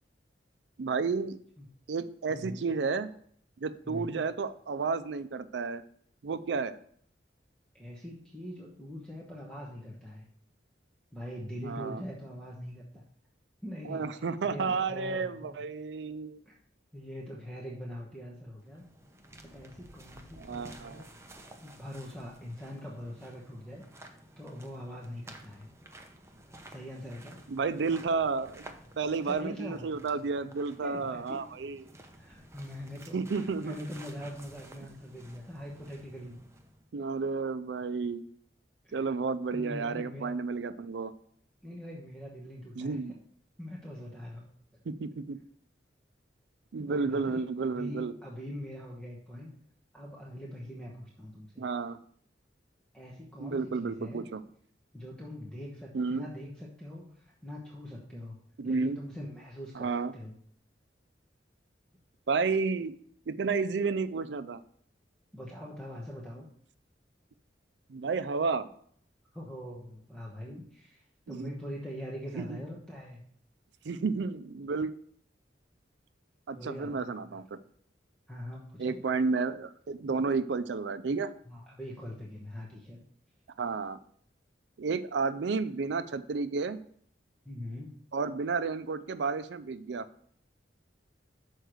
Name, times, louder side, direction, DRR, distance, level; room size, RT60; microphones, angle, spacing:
voice 1, 0.8-1.4 1.9-3.1 3.6-5.8 6.2-6.8 11.6-12.0 13.9-16.4 20.4-21.0 27.5-31.8 33.1-33.9 36.9-38.2 38.9-41.1 42.8-43.1 44.9-45.4 46.7-48.1 51.6-52.0 53.4-54.4 55.9-56.2 58.6-59.0 59.8-60.1 62.3-62.9 63.3-64.6 67.9-68.7 71.3-71.5 72.4-72.6 73.8-74.9 76.5-77.4 78.8-81.3 83.6-84.0 84.8-86.8 88.1-90.1, right 4 dB, 70° right, 13 dB, 0.4 m, -31 dB
voice 2, 2.3-2.6 3.8-4.2 7.7-10.2 11.1-13.0 13.6-15.6 16.4-16.6 16.9-18.8 19.4-23.8 24.4-25.7 26.7-27.4 29.2-29.9 30.8-31.4 32.1-36.4 38.8-39.0 39.5-40.3 41.6-43.2 43.6-44.5 46.9-49.5 49.9-51.6 52.9-54.3 54.9-58.4 58.6-60.3 65.3-66.5 69.3-73.3 76.5-77.4 78.3-79.0 81.5-83.0 87.4-88.0, equal, 5° left, -4 dB, 1.1 m, -43 dB
sound 1, 18.6-36.9, right 1 dB, 15° right, 0.7 m, -53 dB
6.5 x 4.6 x 6.4 m, 0.62 s
head